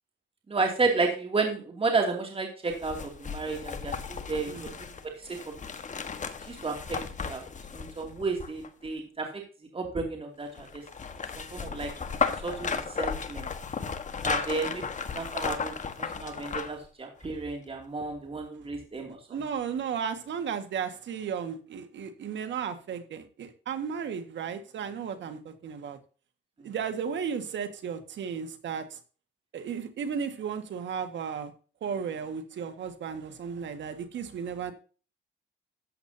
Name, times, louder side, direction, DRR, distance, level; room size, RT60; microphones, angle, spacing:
voice 1, 0.5-4.5 5.2-5.4 6.5-7.0 7.3-7.4 7.7-9.3 9.7-10.8 11.3-11.9 12.4-13.5 14.2-14.8 15.1-19.4, right 3 dB, 30° right, 2 dB, 2.7 m, -32 dB
sound 1, 2.7-8.9 10.5-16.9 17.2-17.3, left 5 dB, 40° left, 1.5 m, -34 dB
voice 2, 19.3-26.0 26.6-29.0 29.5-31.5 31.8-34.7, right 7 dB, 65° right, 8 dB, 1.9 m, -34 dB
13.5 x 8.4 x 2.8 m, 0.37 s
cardioid pair, 90°, 20 cm